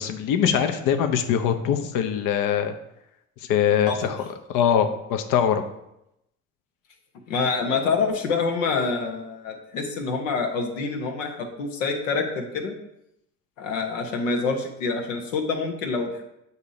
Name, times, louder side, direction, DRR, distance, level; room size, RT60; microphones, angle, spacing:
voice 1, 0.0-2.7 3.4-4.2 4.5-5.6, left 8 dB, 55° left, 7 dB, 0.7 m, -22 dB
voice 2, 7.3-12.7 13.6-16.2, left 4 dB, 80° left, 3 dB, 1.0 m, -26 dB
8.2 x 2.8 x 4.9 m, 0.84 s
hypercardioid pair, 60°, 38 cm